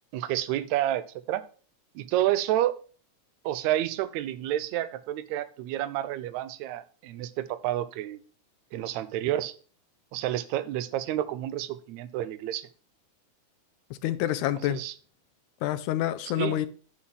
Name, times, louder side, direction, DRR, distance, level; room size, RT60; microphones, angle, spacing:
voice 1, 0.1-1.4 2.0-2.8 3.5-8.2 8.7-9.5 10.1-12.7 14.7-14.9 16.4-16.6, right 13 dB, 75° right, 1.8 m, -29 dB
voice 2, 13.9-14.8 15.6-16.7, left 13 dB, 80° left, 2.0 m, -28 dB
9.6 x 3.9 x 6.1 m
omnidirectional pair, 3.6 m